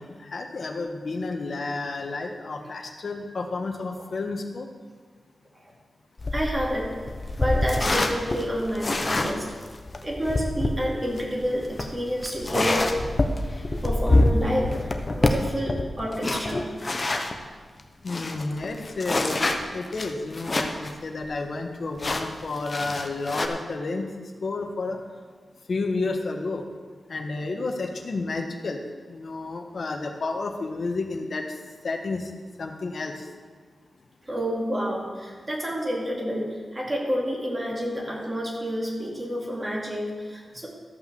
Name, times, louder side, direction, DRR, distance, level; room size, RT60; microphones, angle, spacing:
voice 1, 0.0-4.7 18.0-24.0 24.4-25.0 25.7-26.6 27.1-28.8 29.1-31.6 31.8-32.3 32.6-33.3, left 3 dB, 55° left, 3 dB, 1.4 m, -31 dB
sound 1, 6.2-17.4 17.8-17.9 18.1-20.9 21.2-21.3 22.0-23.5, left 2 dB, 35° left, 0.9 m, -26 dB
voice 2, 6.3-7.0 7.4-9.5 10.0-13.0 13.8-16.7 19.6-19.7 34.2-40.7, equal, 20° right, -3 dB, 2.7 m, -29 dB
13.5 x 5.8 x 7.0 m, 1.5 s
wide cardioid pair, 115°, 0 cm